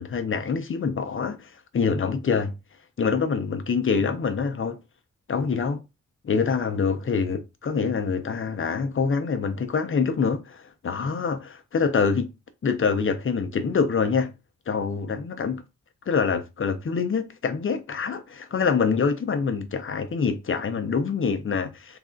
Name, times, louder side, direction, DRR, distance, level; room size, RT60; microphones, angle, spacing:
voice 1, 0.0-2.5 3.0-4.8 5.3-5.8 6.2-12.3 12.6-14.3 14.7-15.6 16.1-22.0, left 5 dB, 45° left, 0.5 m, -25 dB
3.3 x 2.4 x 3.7 m
wide cardioid pair, 140°, 29 cm